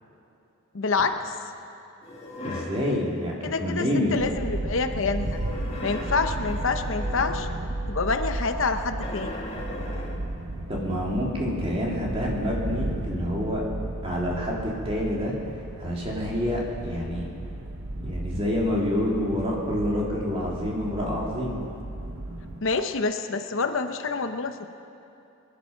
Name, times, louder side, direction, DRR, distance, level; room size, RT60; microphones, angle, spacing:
voice 1, 0.7-1.4 3.4-5.4 5.8-7.5 7.9-9.4 22.6-24.7, left 4 dB, 70° left, 8 dB, 0.8 m, -27 dB
sound 1, 2.0-2.9 5.0-7.6 9.0-10.3, left 1 dB, 30° left, 2.0 m, -37 dB
voice 2, 2.4-4.1 10.7-13.6 14.0-15.4 15.8-17.3 17.9-21.6, left 1 dB, 25° right, -4 dB, 2.8 m, -27 dB
sound 2, 4.2-22.6, right 1 dB, 90° right, 1.2 m, -34 dB
22.0 x 11.5 x 5.8 m, 2.8 s
head